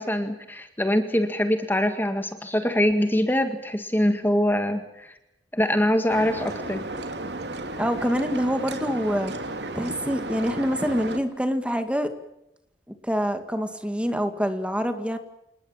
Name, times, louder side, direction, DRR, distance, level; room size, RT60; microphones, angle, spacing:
voice 1, 0.0-5.2 5.5-6.8, left 1 dB, 10° left, 7 dB, 1.9 m, -24 dB
sound 1, 6.1-11.2, right 2 dB, 70° right, 2.7 m, -33 dB
voice 2, 7.7-9.3 9.7-12.1 13.0-15.2, equal, 5° right, 8 dB, 2.1 m, -26 dB
28.5 x 19.5 x 7.4 m, 0.84 s
head